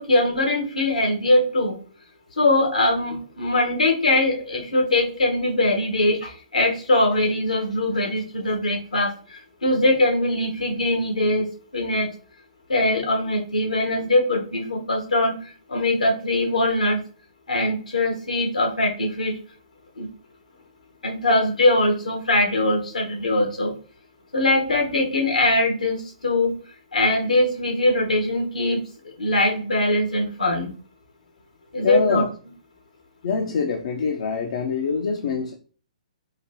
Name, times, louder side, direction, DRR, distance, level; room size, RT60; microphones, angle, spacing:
voice 1, 0.0-1.8 2.4-12.1 12.7-17.0 17.5-19.4 20.0-20.1 21.0-23.7 24.3-26.5 26.9-30.7 31.7-32.2, left 1 dB, 80° left, 1 dB, 1.2 m, -22 dB
voice 2, 31.8-32.3 33.2-35.5, left 5 dB, 60° left, 4 dB, 0.4 m, -24 dB
4.0 x 2.6 x 2.8 m, 0.41 s
figure-of-eight pair, 125°, 4 cm